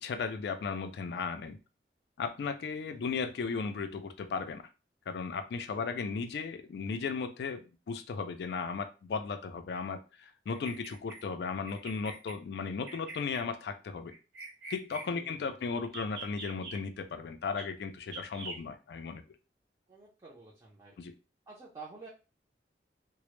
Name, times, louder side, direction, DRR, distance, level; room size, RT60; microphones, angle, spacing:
voice 1, 0.0-1.6 2.2-4.6 5.1-14.1 14.7-19.2 21.0-21.1, left 5 dB, 65° left, 8 dB, 0.3 m, -36 dB
Bird vocalization bird call bird song, 10.5-11.2 11.7-12.3 12.9-13.5 14.1-15.1 15.8-16.8 17.6-17.7 18.1-18.6, right 3 dB, 65° right, 0.8 m, -44 dB
voice 2, 15.1-15.6 19.9-21.0 21.5-22.1, right 4 dB, 20° right, -6 dB, 0.5 m, -50 dB
2.0 x 2.0 x 3.0 m, 0.31 s
head